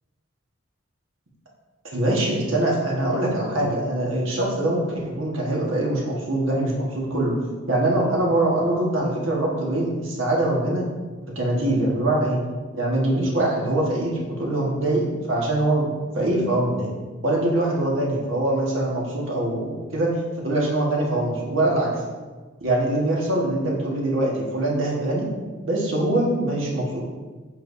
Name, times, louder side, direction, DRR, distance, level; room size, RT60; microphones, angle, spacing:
voice 1, 1.9-7.3 7.7-10.9 11.3-12.4 12.7-16.9 17.2-20.2 20.4-22.0 22.6-25.3 25.6-27.0, right 1 dB, 75° right, -3 dB, 1.5 m, -23 dB
7.6 x 4.7 x 2.6 m, 1.3 s
head